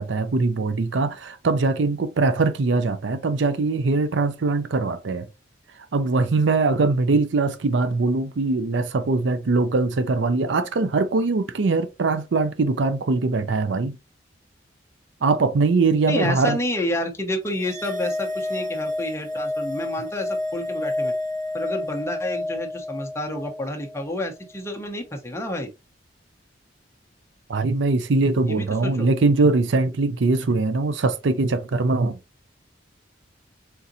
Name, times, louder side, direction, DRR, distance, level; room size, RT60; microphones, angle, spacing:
voice 1, 0.0-5.3 5.9-14.0 15.2-16.6 27.5-32.2, right 3 dB, 70° right, 0.5 m, -22 dB
voice 2, 16.1-21.1 21.5-25.7 28.5-29.1, left 1 dB, 15° left, 0.9 m, -29 dB
sound 1, 17.5-24.1, left 2 dB, 45° right, 1.3 m, -29 dB
4.2 x 3.8 x 2.7 m
head